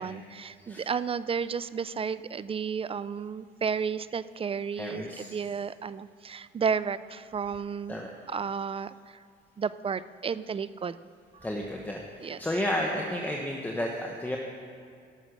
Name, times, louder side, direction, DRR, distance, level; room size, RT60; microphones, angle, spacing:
voice 1, 0.0-8.0 8.3-9.2 9.6-11.0 11.3-11.5 12.2-12.4, right 6 dB, 30° right, 16 dB, 0.4 m, -32 dB
voice 2, 4.8-5.3 7.9-8.1 11.4-14.4, left 1 dB, 10° left, 0 dB, 1.1 m, -32 dB
17.5 x 6.5 x 6.6 m, 2.3 s
cardioid pair, 90°, 20 cm